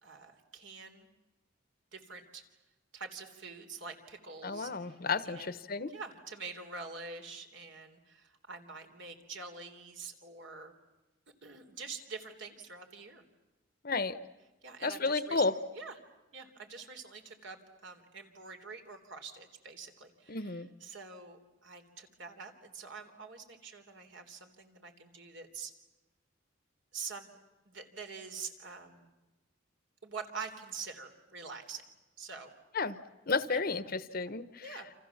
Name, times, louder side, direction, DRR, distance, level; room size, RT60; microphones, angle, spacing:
voice 1, 0.0-1.1 1.9-2.4 2.9-5.0 5.2-5.6 5.9-10.7 11.4-13.2 14.6-15.5 15.7-16.0 16.3-25.7 26.9-27.3 27.7-29.1 30.0-31.8 32.2-32.5 33.5-33.6 34.6-34.9, right 4 dB, 65° right, 6 dB, 3.6 m, -46 dB
voice 2, 4.4-5.9 13.8-14.2 14.8-15.5 20.3-20.7 32.7-33.0 33.3-34.8, left 4 dB, 50° left, 13 dB, 1.0 m, -32 dB
29.5 x 27.5 x 7.3 m, 1.1 s
head